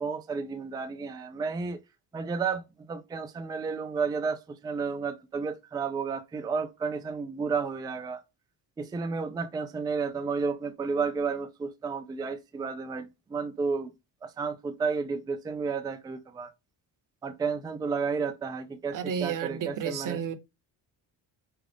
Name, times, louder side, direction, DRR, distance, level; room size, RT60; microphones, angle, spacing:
voice 1, 0.0-1.8 2.1-8.2 8.8-13.9 14.2-16.5 17.2-20.3, right 5 dB, 10° right, 0.3 m, -32 dB
voice 2, 18.9-20.3, right 8 dB, 45° right, 0.7 m, -32 dB
5.0 x 2.4 x 3.3 m
cardioid pair, 140°, 44 cm